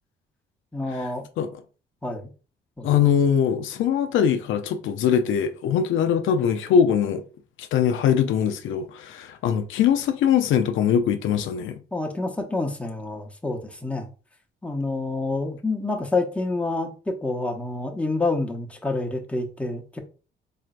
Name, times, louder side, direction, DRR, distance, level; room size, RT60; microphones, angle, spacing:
voice 1, 0.7-1.3 2.0-2.3 2.8-2.9 11.9-14.1 14.6-20.0, left 2 dB, 5° left, 0.8 m, -28 dB
voice 2, 2.8-7.2 7.6-11.8, left 8 dB, 80° left, 0.5 m, -22 dB
4.1 x 3.2 x 2.4 m
cardioid pair, 90°, 20 cm